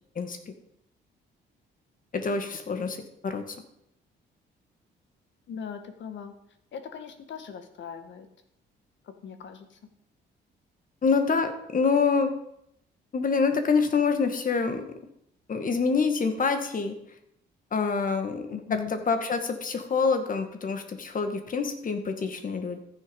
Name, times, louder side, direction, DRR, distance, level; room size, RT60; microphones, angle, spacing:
voice 1, 0.2-0.5 2.1-3.0 3.2-3.6 11.0-12.4 13.1-14.9 15.5-17.0 17.7-22.8, left 5 dB, 45° left, 7 dB, 1.9 m, -26 dB
voice 2, 5.5-6.3 6.7-8.3 9.2-9.7 18.5-18.9, left 8 dB, 70° left, 8 dB, 1.7 m, -39 dB
14.5 x 6.8 x 5.4 m, 0.75 s
cardioid pair, 90°, 20 cm